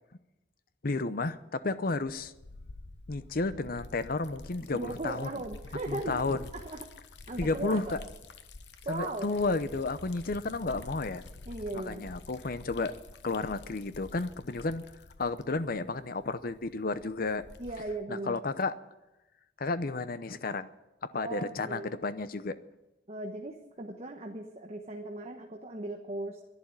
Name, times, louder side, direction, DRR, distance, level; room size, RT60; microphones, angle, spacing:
voice 1, 0.8-2.3 3.1-5.3 5.9-6.5 7.4-8.0 8.9-11.2 11.7-12.9 13.2-14.8 15.2-17.4 18.1-18.8 19.6-20.7 21.1-22.6, left 3 dB, 55° left, 13 dB, 0.8 m, -32 dB
Liquid, 1.9-18.0, left 2 dB, 75° left, 1.0 m, -49 dB
voice 2, 4.7-6.2 6.5-6.8 7.3-8.0 8.8-9.3 11.5-12.1 17.6-18.4 21.2-21.9 23.1-26.4, right 2 dB, 40° right, 2 dB, 1.2 m, -38 dB
11.5 x 11.5 x 9.5 m, 0.98 s
head